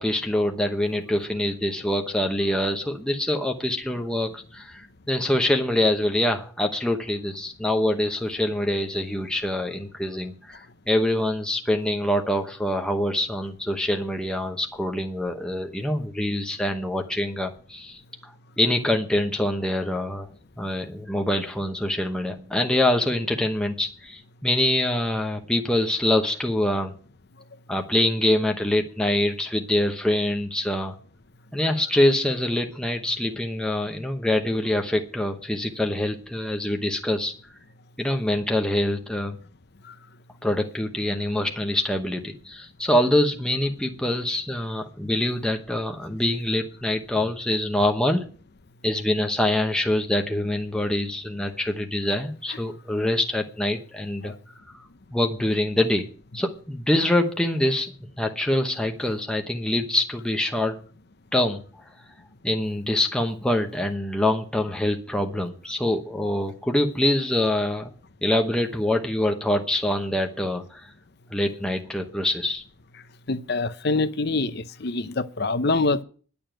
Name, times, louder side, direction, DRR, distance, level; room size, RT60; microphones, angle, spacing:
voice 1, 0.0-18.3 18.6-20.3 20.6-27.0 27.7-30.9 31.5-37.3 38.0-39.4 40.4-48.3 48.8-54.3 55.1-56.1 56.3-57.9 58.2-60.8 61.3-61.6 62.4-67.9 68.2-70.9 71.3-72.6, left 1 dB, 5° left, 0.9 m, -25 dB
voice 2, 73.3-76.0, left 3 dB, 50° left, 0.7 m, -25 dB
11.0 x 7.0 x 9.0 m
head